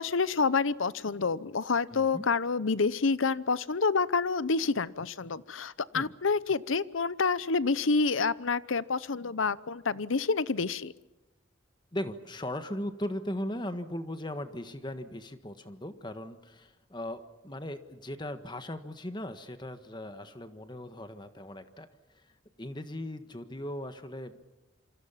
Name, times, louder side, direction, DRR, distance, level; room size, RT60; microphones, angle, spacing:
voice 1, 0.0-10.9, left 4 dB, 90° left, 17 dB, 0.8 m, -28 dB
voice 2, 1.9-2.2 5.9-6.1 11.9-24.4, left 1 dB, 25° left, 9 dB, 1.5 m, -38 dB
27.5 x 26.0 x 5.8 m, 1.1 s
head